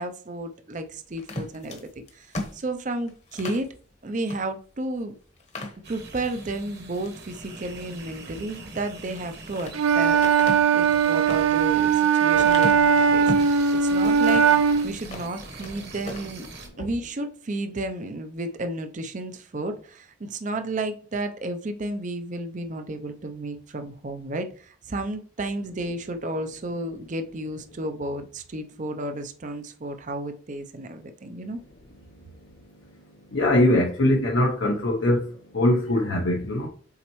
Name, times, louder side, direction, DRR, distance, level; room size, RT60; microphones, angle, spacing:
voice 1, 0.0-1.9 2.1-2.3 2.5-3.7 4.0-5.1 5.9-10.2 10.7-14.5 14.8-16.5 16.8-31.6, right 2 dB, 40° right, 0.5 m, -32 dB
sound 1, 1.2-3.7 4.2-4.4 4.8-4.9 5.4-6.3 6.8-7.2 9.0-9.8 10.2-13.6 14.0-14.6 15.0-15.7 16.0-16.3, left 1 dB, 35° left, 1.0 m, -36 dB
sound 2, 5.8-16.7, right 2 dB, 55° right, 1.4 m, -43 dB
Wind instrument woodwind instrument, 9.7-14.9, right 6 dB, 90° right, 0.5 m, -19 dB
voice 2, 33.3-35.2 35.5-36.7, left 1 dB, 65° left, 0.8 m, -21 dB
7.2 x 4.3 x 3.1 m
head